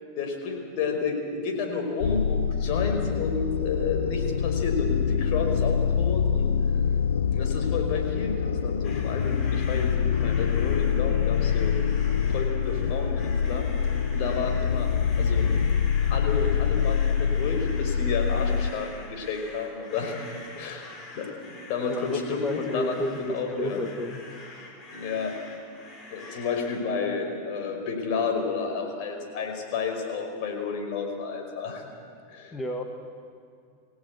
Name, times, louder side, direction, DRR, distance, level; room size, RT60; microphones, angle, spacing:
voice 1, 0.1-6.5 7.3-11.7 12.3-13.7 14.1-14.9 15.2-15.5 16.1-20.3 20.6-20.9 21.2-21.3 21.7-22.9 23.3-23.8 24.9-25.3 26.1-31.9 32.3-32.6, left 4 dB, 55° left, 4 dB, 5.2 m, -31 dB
sound 1, 2.0-18.7, left 7 dB, 90° left, 0.5 m, -25 dB
sound 2, 8.8-26.8, left 3 dB, 35° left, 4.9 m, -45 dB
voice 2, 21.9-24.2 32.5-32.8, left 1 dB, 15° left, 4 dB, 1.9 m, -31 dB
24.5 x 17.0 x 9.7 m, 2.4 s
hypercardioid pair, 115°, 0 cm